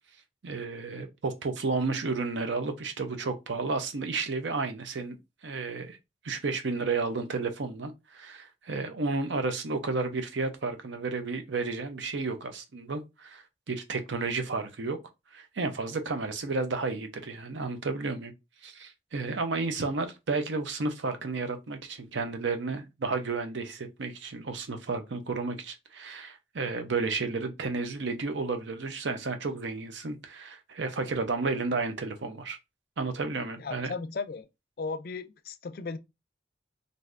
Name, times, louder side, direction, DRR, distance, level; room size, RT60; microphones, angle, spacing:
voice 1, 0.4-5.2 5.4-6.0 6.2-15.0 15.3-18.3 18.6-32.6 33.0-33.9, right 3 dB, 85° right, 0.6 m, -32 dB
voice 2, 33.6-34.5 34.8-36.0, left 4 dB, 55° left, 0.4 m, -36 dB
3.3 x 2.6 x 2.5 m
head